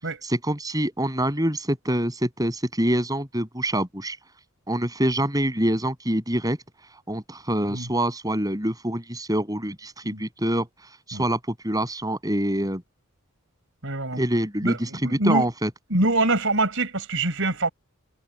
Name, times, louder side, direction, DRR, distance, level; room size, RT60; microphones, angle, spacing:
voice 1, 0.2-4.2 4.7-6.6 7.1-10.7 11.1-11.4 11.6-12.8 14.1-15.7, right 1 dB, 15° right, 7.4 m, -25 dB
voice 2, 13.8-14.2 14.6-15.5 15.9-17.7, right 2 dB, 60° right, 7.2 m, -24 dB
head